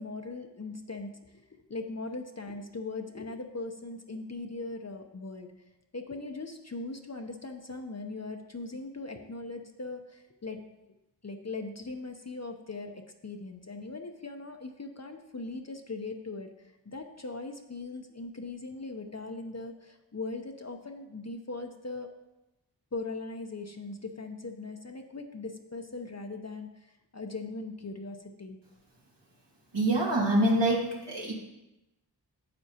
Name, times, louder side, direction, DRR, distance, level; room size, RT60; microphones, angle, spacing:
voice 1, 0.0-5.5 5.9-10.6 11.2-22.1 22.9-28.6, left 3 dB, 40° left, 4 dB, 0.6 m, -40 dB
voice 2, 29.7-31.3, right 1 dB, 80° right, -4 dB, 2.0 m, -25 dB
9.4 x 7.8 x 2.8 m, 0.97 s
wide cardioid pair, 45°, 43 cm